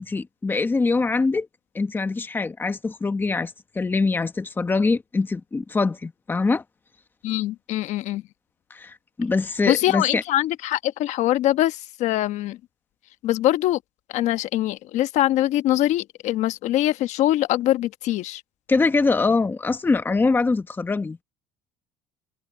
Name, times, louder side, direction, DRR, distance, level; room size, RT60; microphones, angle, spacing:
voice 1, 0.0-1.5 1.7-6.6 8.7-10.2 18.7-21.2, left 3 dB, 15° left, 1.2 m, -23 dB
voice 2, 7.2-8.2 9.6-12.6 13.2-13.8 14.1-18.4, left 14 dB, 60° left, 1.1 m, -23 dB
cardioid pair, 130°, 13 cm